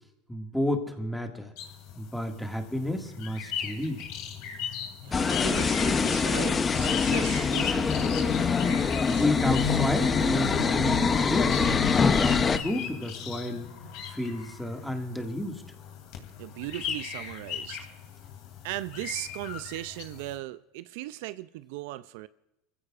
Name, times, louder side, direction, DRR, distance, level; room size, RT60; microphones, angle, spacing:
voice 1, 0.3-1.5 2.0-4.0 9.1-11.6 12.0-13.7 14.1-15.6, left 1 dB, ahead, 1.9 m, -31 dB
sound 1, 1.6-20.3, left 7 dB, 65° left, 2.7 m, -35 dB
voice 2, 5.0-8.1 16.4-17.9 18.6-22.3, right 16 dB, 75° right, 0.4 m, -38 dB
sound 2, 5.1-12.6, left 5 dB, 25° left, 0.7 m, -25 dB
26.5 x 15.5 x 2.5 m
supercardioid pair, 115°, 0 cm